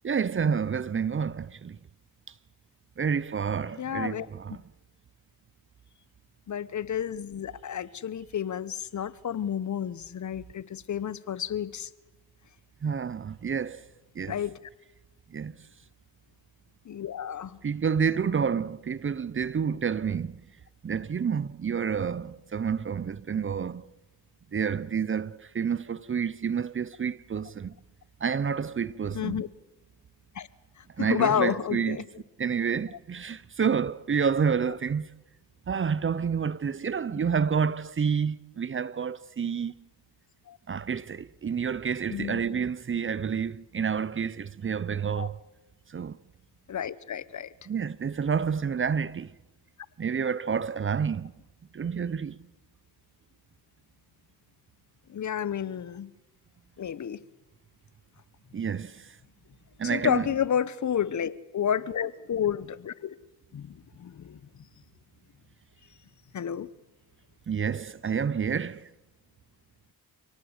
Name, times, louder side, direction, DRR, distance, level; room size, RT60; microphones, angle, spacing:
voice 1, 0.0-1.8 3.0-4.6 12.8-13.9 14.1-14.4 15.3-15.6 17.6-20.4 20.8-23.8 24.5-27.8 28.2-29.4 31.0-32.0 32.4-35.1 35.7-39.7 40.7-45.4 45.9-46.2 47.7-49.3 50.0-51.3 51.7-52.4 58.5-59.2 59.8-60.3 67.5-68.9, right 6 dB, 30° right, 0.7 m, -29 dB
voice 2, 3.8-4.3 6.5-11.9 14.3-14.5 16.9-17.6 29.1-29.5 30.3-30.5 31.0-32.0 40.5-40.6 42.1-42.4 45.2-45.3 46.7-47.5 55.1-56.1 56.8-57.2 59.8-63.1 63.5-64.4 66.3-66.7, left 9 dB, 45° left, 1.0 m, -30 dB
27.5 x 18.5 x 8.1 m
cardioid pair, 75°, 39 cm